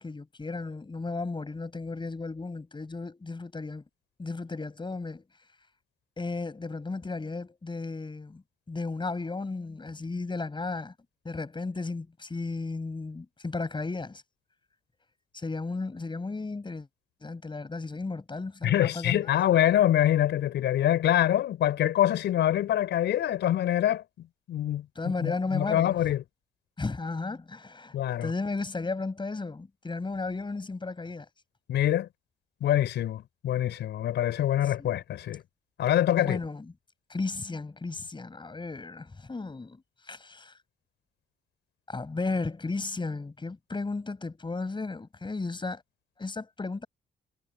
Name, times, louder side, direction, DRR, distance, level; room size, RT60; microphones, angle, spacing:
voice 1, 0.0-3.8 4.2-5.2 6.2-10.9 11.2-14.2 15.3-16.9 17.2-19.3 24.9-25.9 26.8-27.9 28.2-31.3 34.8-35.0 36.1-36.6 37.1-39.8 40.1-40.5 41.9-45.8 46.2-46.9, left 3 dB, 25° left, 6.9 m, -34 dB
voice 2, 18.6-24.0 24.5-26.2 27.9-28.3 31.7-32.1 32.6-35.4 35.8-36.4, left 12 dB, 70° left, 5.3 m, -25 dB
supercardioid pair, 65°, 18 cm